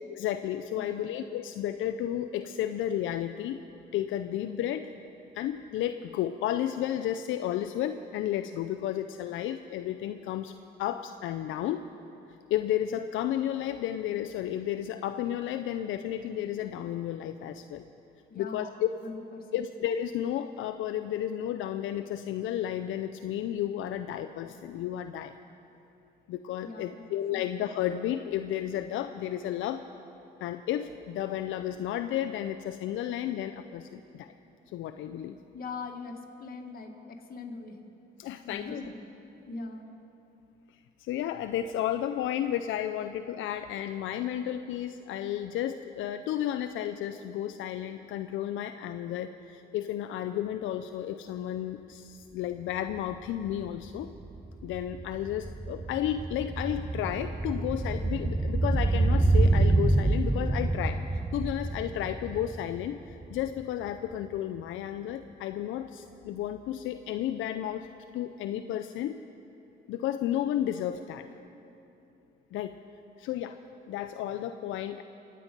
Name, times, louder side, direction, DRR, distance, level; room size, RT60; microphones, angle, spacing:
voice 1, 0.1-3.6 3.9-4.9 5.3-10.5 10.8-11.9 12.5-17.8 18.3-18.9 19.5-25.3 26.3-29.8 30.4-34.3 34.7-35.4 38.2-38.8 41.0-54.1 54.6-67.9 68.1-69.2 69.9-71.3 72.5-72.8 73.2-73.6 73.9-75.0, left 11 dB, 80° left, 8 dB, 0.5 m, -32 dB
voice 2, 0.7-1.1 18.3-19.6 26.6-27.1 27.3-27.4 35.5-37.8 38.4-39.0 39.5-39.9, left 3 dB, 50° left, 3 dB, 1.8 m, -41 dB
sound 1, 52.9-53.0 53.3-63.6 63.9-64.0, right 2 dB, 10° right, 0.5 m, -27 dB
24.5 x 8.7 x 5.2 m, 2.9 s
cardioid pair, 90°, 20 cm